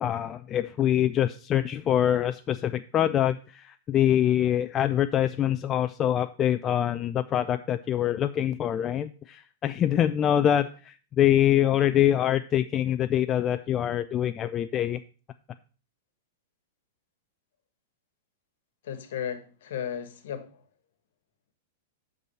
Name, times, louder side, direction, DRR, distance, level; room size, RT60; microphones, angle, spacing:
voice 1, 0.0-15.0, left 11 dB, 25° left, 0.4 m, -25 dB
voice 2, 18.8-20.6, left 8 dB, 60° left, 1.3 m, -35 dB
8.2 x 6.1 x 5.4 m
figure-of-eight pair, 100°, 0 cm